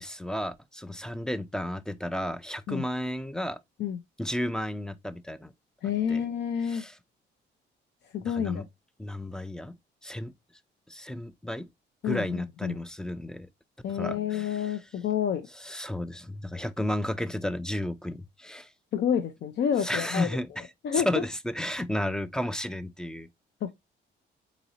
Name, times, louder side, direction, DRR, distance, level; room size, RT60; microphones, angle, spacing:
voice 1, 0.0-3.6 4.2-5.5 6.1-6.2 6.7-6.9 8.3-8.7 9.0-9.8 10.0-10.3 10.9-11.7 12.0-13.5 13.9-14.8 15.6-18.7 19.8-20.7 20.9-23.3, left 1 dB, 5° left, 0.3 m, -33 dB
voice 2, 5.8-6.8 8.1-8.6 12.0-12.8 13.8-15.5 18.9-20.3 20.8-21.1 23.6-23.7, left 8 dB, 60° left, 0.5 m, -29 dB
4.0 x 2.6 x 2.8 m
cardioid pair, 90°, 20 cm